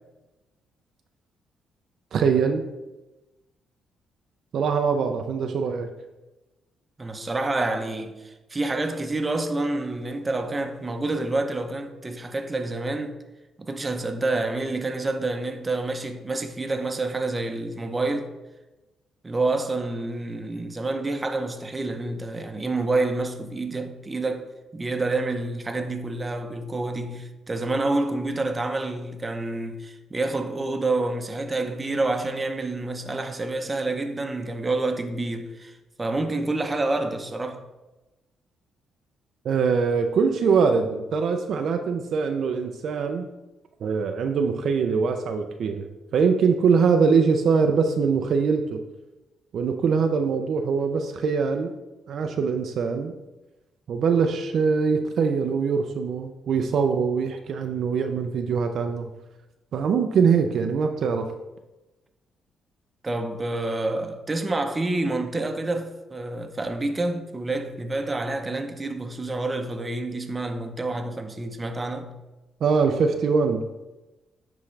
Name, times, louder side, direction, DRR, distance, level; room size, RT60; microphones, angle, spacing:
voice 1, 2.1-2.6 4.5-5.9 39.4-43.3 43.8-45.9 46.1-48.8 49.5-51.7 52.1-53.1 53.9-59.1 59.7-61.3 72.6-73.6, right 5 dB, 65° right, 0.5 m, -23 dB
voice 2, 7.0-13.2 13.6-18.3 19.2-24.4 24.7-37.6 63.0-72.2, right 2 dB, 25° right, 0.7 m, -28 dB
9.8 x 3.6 x 3.3 m
cardioid pair, 90°, 0 cm